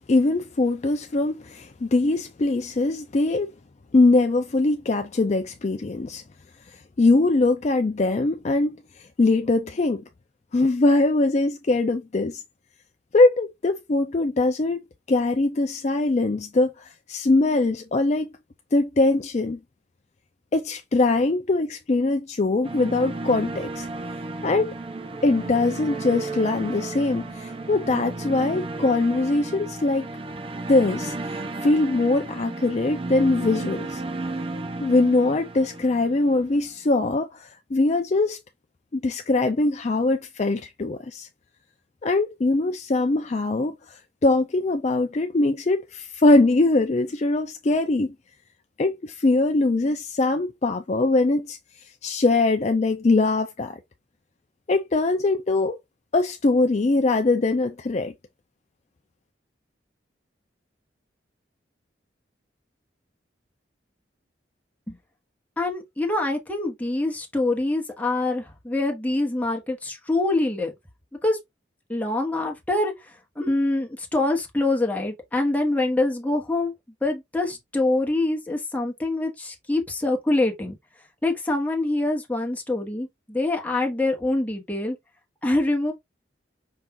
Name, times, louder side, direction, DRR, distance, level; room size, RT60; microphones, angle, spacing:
voice 1, 0.1-3.5 3.9-6.2 7.0-8.7 9.2-10.0 10.5-12.4 13.1-14.8 15.1-18.3 18.7-19.6 20.5-23.9 24.4-24.7 25.2-30.1 30.7-34.0 34.8-38.4 38.9-41.3 42.0-48.1 48.8-51.6 52.0-53.8 54.7-55.8 56.1-58.1, left 2 dB, 35° left, 0.4 m, -22 dB
sound 1, 22.6-36.7, right 2 dB, 30° right, 0.5 m, -33 dB
voice 2, 65.6-70.7 71.2-71.4 71.9-72.9 73.4-76.7 77.0-80.7 81.2-85.0 85.4-85.9, left 2 dB, 10° left, 1.1 m, -25 dB
5.7 x 2.5 x 3.7 m
head